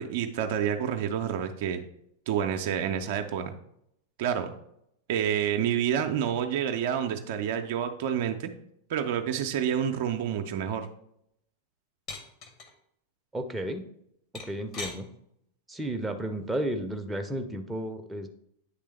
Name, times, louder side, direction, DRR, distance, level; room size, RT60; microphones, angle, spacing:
voice 1, 0.0-1.8 2.3-3.5 4.2-4.5 5.1-8.5 8.9-10.9, right 9 dB, 50° right, 6 dB, 0.5 m, -28 dB
sound 1, 12.1-12.7 14.3-15.0 16.5-16.8, left 3 dB, 40° left, 1.0 m, -39 dB
voice 2, 13.3-13.8 14.4-15.1 15.7-18.3, right 1 dB, 10° right, 5 dB, 0.6 m, -32 dB
9.4 x 3.3 x 3.2 m, 0.75 s
figure-of-eight pair, 90°, 0 cm